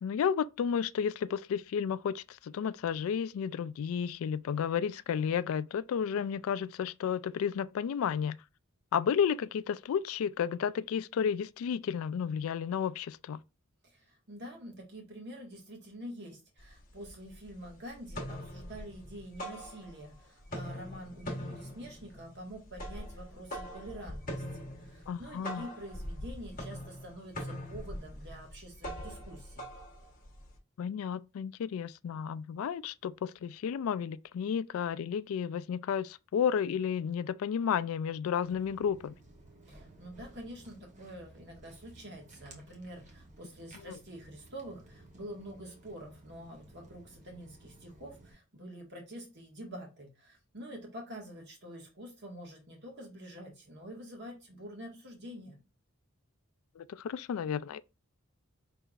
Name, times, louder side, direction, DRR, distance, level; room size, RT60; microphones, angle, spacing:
voice 1, 0.0-8.4 8.9-13.4 25.1-25.7 30.8-39.1 43.9-44.0 56.8-57.8, left 7 dB, 75° left, 0.3 m, -32 dB
voice 2, 13.8-29.7 39.7-55.6, equal, 50° right, 1.6 m, -47 dB
sound 1, 16.6-16.7 17.0-17.7 18.0-20.2 20.4-30.6, equal, 40° left, 1.2 m, -42 dB
Walk footsteps, 38.4-48.3, right 1 dB, 35° right, 1.1 m, -56 dB
5.5 x 3.3 x 2.4 m
head